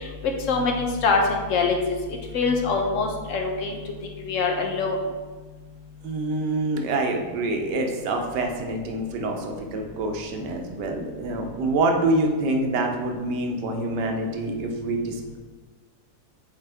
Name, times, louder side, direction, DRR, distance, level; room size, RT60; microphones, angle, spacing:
voice 1, 0.5-1.8 2.3-5.0, left 4 dB, 60° left, 2 dB, 0.9 m, -24 dB
voice 2, 6.0-15.4, right 2 dB, 85° right, 3 dB, 1.4 m, -26 dB
7.7 x 3.7 x 3.4 m, 1.4 s
omnidirectional pair, 1.8 m